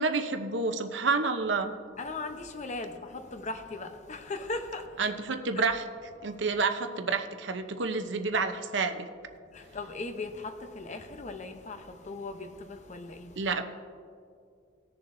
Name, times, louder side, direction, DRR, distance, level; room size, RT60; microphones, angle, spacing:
voice 1, 0.0-1.7 5.0-5.8 6.2-9.1 13.4-13.6, right 4 dB, 75° right, 0.8 m, -29 dB
voice 2, 2.0-5.1 5.6-5.7 6.2-6.4 9.4-13.5, left 3 dB, 40° left, 0.8 m, -38 dB
19.0 x 6.9 x 2.7 m
head